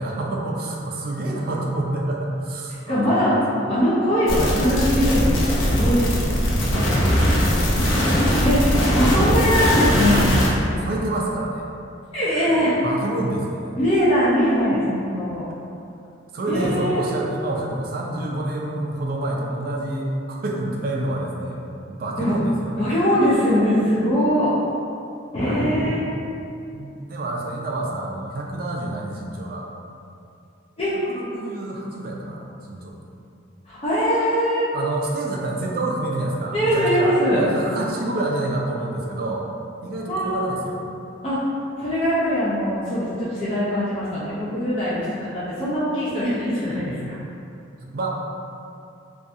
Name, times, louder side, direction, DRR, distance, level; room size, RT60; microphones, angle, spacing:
voice 1, 0.0-3.4 6.6-8.5 9.9-11.7 12.8-13.8 16.3-21.6 21.9-22.9 26.7-29.7 31.1-33.0 34.7-39.5 39.8-40.8 46.9-47.0 47.8-48.1, right 2 dB, 50° right, -1 dB, 0.3 m, -28 dB
voice 2, 2.9-3.4 3.7-6.7 8.4-10.2 12.1-12.7 13.8-15.5 16.5-17.1 22.2-22.4 22.8-24.5 25.3-26.0 30.8-31.0 33.7-34.7 36.5-37.5 40.1-40.6 41.2-41.4 41.8-47.2, equal, 30° left, -11 dB, 0.4 m, -21 dB
sound 1, 4.3-10.5, equal, 85° left, 0.5 m, -20 dB
2.6 x 2.3 x 2.4 m, 2.6 s
head